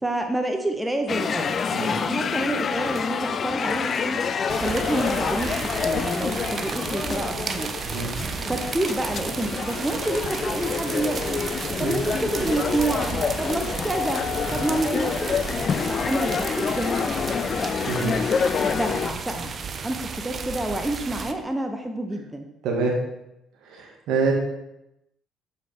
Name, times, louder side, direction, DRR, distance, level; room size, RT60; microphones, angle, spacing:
voice 1, 0.0-4.2 4.6-7.7 8.5-11.4 11.8-14.2 14.5-15.4 15.9-17.0 17.3-17.7 18.5-19.5 19.8-22.5, right 1 dB, 10° right, 4 dB, 0.8 m, -28 dB
sound 1, 1.1-19.1, left 6 dB, 45° left, 0.3 m, -27 dB
sound 2, 4.5-21.3, right 5 dB, 45° right, 0.5 m, -33 dB
voice 2, 17.8-18.1 19.8-19.9 22.6-22.9 23.7-24.3, right 4 dB, 65° right, 0 dB, 1.5 m, -26 dB
6.9 x 5.0 x 3.3 m, 0.87 s
hypercardioid pair, 55°, 0 cm